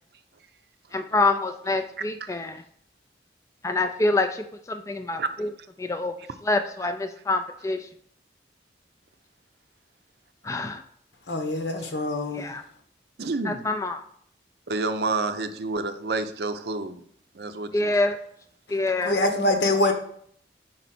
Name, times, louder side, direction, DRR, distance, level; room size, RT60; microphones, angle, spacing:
voice 1, 0.9-2.6 3.6-5.5 5.8-6.1 6.4-7.8 10.4-10.8 12.3-12.6 13.5-14.0 17.7-18.2 18.7-19.1, left 2 dB, 15° left, 7 dB, 0.3 m, -26 dB
voice 2, 2.0-2.4 5.2-5.3 6.8-6.9 13.2-13.7 14.7-17.0 17.3-17.9, right 3 dB, 60° right, 9 dB, 0.5 m, -29 dB
voice 3, 11.3-12.5 19.0-19.9, left 2 dB, 75° left, 5 dB, 1.0 m, -24 dB
5.2 x 4.0 x 5.9 m, 0.63 s
head